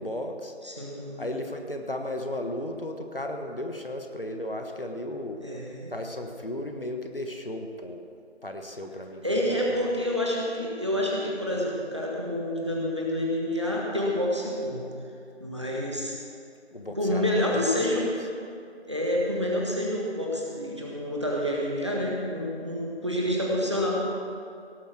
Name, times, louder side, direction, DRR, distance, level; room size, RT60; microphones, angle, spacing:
voice 1, 0.0-0.5 1.2-5.4 5.9-8.0 8.4-9.8 16.7-18.1, left 1 dB, 55° left, 4 dB, 1.3 m, -35 dB
voice 2, 0.6-1.3 5.4-5.9 9.2-14.8 15.4-16.1 17.0-18.1 18.8-24.0, left 1 dB, 25° right, -3 dB, 1.6 m, -28 dB
18.0 x 8.3 x 6.2 m, 2.5 s
figure-of-eight pair, 175°, 34 cm